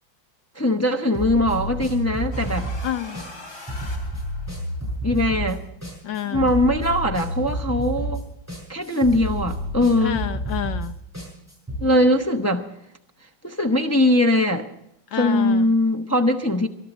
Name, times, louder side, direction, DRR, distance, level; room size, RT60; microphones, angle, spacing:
voice 1, 0.6-2.7 5.0-5.6 6.3-8.2 8.7-10.3 11.8-12.7 13.4-14.7 15.2-16.7, left 1 dB, 20° left, 4 dB, 0.4 m, -21 dB
sound 1, 1.1-11.8, equal, 5° right, 7.1 m, -30 dB
sound 2, 2.3-4.8, left 2 dB, 40° left, 3.7 m, -42 dB
voice 2, 2.8-3.2 6.0-6.5 10.0-10.9 15.1-15.7, left 11 dB, 75° left, 10 dB, 1.6 m, -28 dB
21.5 x 12.0 x 4.2 m, 0.81 s
omnidirectional pair, 2.1 m